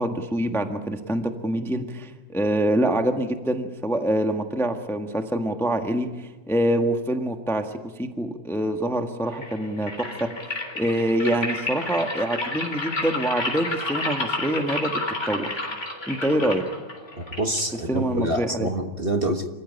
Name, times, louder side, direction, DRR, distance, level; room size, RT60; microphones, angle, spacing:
voice 1, 0.0-15.6 16.1-16.6 17.9-18.7, right 1 dB, ahead, 5 dB, 1.2 m, -25 dB
sound 1, 9.3-18.3, left 2 dB, 35° left, 4.0 m, -31 dB
voice 2, 17.4-19.5, right 1 dB, 30° right, 5 dB, 1.5 m, -26 dB
27.0 x 15.5 x 9.9 m, 1.3 s
omnidirectional pair, 2.2 m